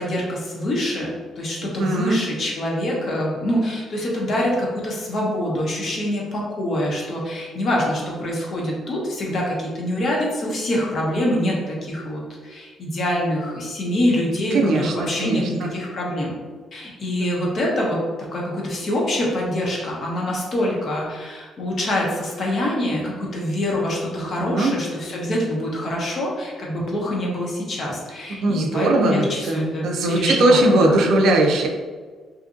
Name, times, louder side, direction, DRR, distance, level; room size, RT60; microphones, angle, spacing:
voice 1, 0.0-16.3 16.7-18.0 18.3-31.1, left 1 dB, 55° left, -3 dB, 0.8 m, -25 dB
voice 2, 1.8-2.2 14.5-15.7 24.4-24.7 28.4-31.7, right 2 dB, 80° right, 1 dB, 0.4 m, -20 dB
2.7 x 2.5 x 2.5 m, 1.5 s
cardioid pair, 90°, 0 cm